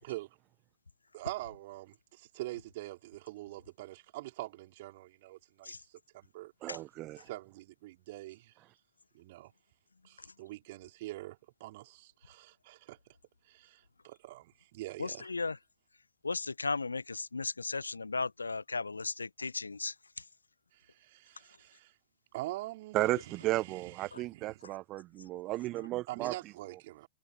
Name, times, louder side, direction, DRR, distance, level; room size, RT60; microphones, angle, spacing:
voice 1, 0.0-0.4 1.1-6.7 7.2-8.5 9.1-9.5 10.0-13.0 13.5-15.3 20.7-21.9 22.3-24.6 26.1-27.1, right 18 dB, 55° right, 5.3 m, -45 dB
voice 2, 6.6-7.3 22.9-26.3, right 17 dB, 35° right, 1.3 m, -34 dB
voice 3, 15.0-15.6 16.2-19.9 24.1-24.2, left 4 dB, 80° left, 1.4 m, -35 dB
figure-of-eight pair, 90°, 0 cm